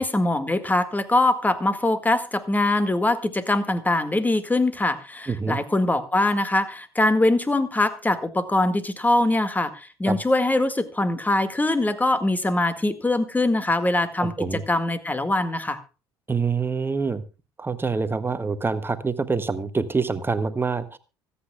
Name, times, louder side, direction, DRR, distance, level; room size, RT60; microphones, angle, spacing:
voice 1, 0.0-15.8, left 2 dB, 10° left, 12 dB, 1.9 m, -23 dB
voice 2, 5.3-5.6 10.1-10.2 14.2-14.6 16.3-17.2 17.6-21.0, right 4 dB, 15° right, 12 dB, 1.5 m, -26 dB
25.0 x 8.7 x 2.3 m, 0.32 s
figure-of-eight pair, 60°, 13 cm